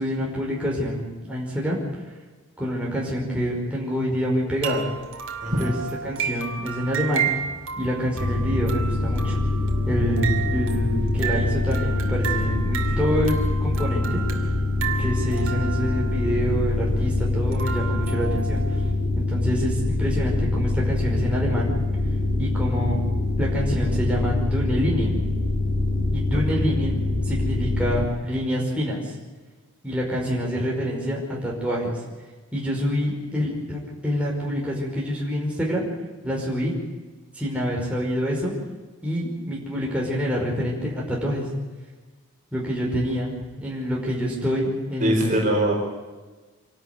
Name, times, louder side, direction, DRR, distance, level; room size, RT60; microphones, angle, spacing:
voice 1, 0.0-1.8 2.6-4.8 5.6-5.7 6.0-7.3 7.8-9.4 9.9-13.4 13.6-14.2 14.7-18.6 19.2-21.7 22.4-23.0 23.4-25.2 26.1-29.0 29.8-32.0 32.5-35.9 36.2-36.8 37.3-38.5 39.0-41.4 42.5-45.4, equal, 5° right, -4 dB, 5.3 m, -26 dB
sound 1, 4.6-18.9, right 7 dB, 60° right, 2.5 m, -33 dB
voice 2, 5.4-5.7 26.3-26.4 45.0-45.7, right 1 dB, 35° right, -1 dB, 4.8 m, -22 dB
sound 2, 8.2-28.1, left 2 dB, 50° left, 3.7 m, -24 dB
26.0 x 12.5 x 9.5 m, 1.3 s
head